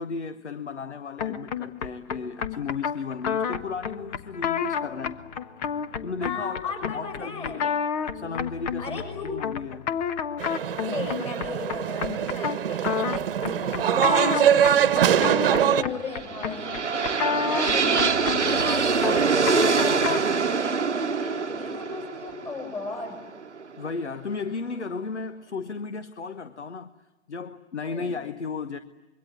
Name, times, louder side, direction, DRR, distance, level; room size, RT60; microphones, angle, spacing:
voice 1, 0.0-5.2 6.0-7.7 8.1-9.9 13.9-14.1 23.8-26.9 27.3-28.8, left 4 dB, 80° left, 1.2 m, -34 dB
sound 1, 1.2-20.4, left 7 dB, 35° left, 1.3 m, -31 dB
voice 2, 6.2-7.6 8.8-9.3 10.9-13.0 13.4-23.2 27.8-28.2, left 4 dB, 20° left, 6.6 m, -36 dB
sound 2, 10.4-15.8, right 9 dB, 55° right, 1.2 m, -23 dB
sound 3, 15.9-23.9, right 5 dB, 85° right, 1.0 m, -25 dB
26.0 x 23.5 x 9.4 m
figure-of-eight pair, 120°, 34 cm